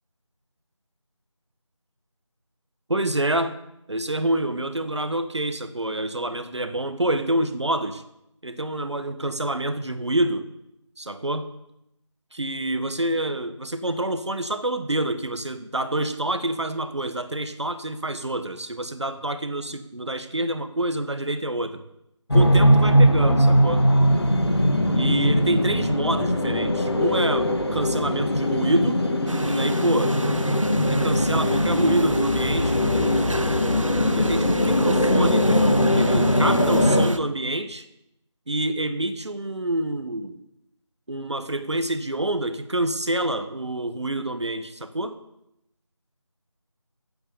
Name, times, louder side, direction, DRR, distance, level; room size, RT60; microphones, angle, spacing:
voice 1, 2.9-3.5 3.9-8.0 8.4-10.4 11.0-11.5 12.3-21.8 22.3-23.8 24.9-29.0 29.5-30.2 30.8-33.3 34.1-35.5 35.9-37.9 38.5-40.4 41.1-45.2, right 1 dB, 60° right, 9 dB, 1.5 m, -27 dB
sound 1, 22.3-37.1, equal, 55° left, 2.0 m, -20 dB
sound 2, 29.3-37.2, right 2 dB, 80° right, 1.2 m, -34 dB
17.0 x 8.8 x 7.0 m, 0.83 s
figure-of-eight pair, 175°, 16 cm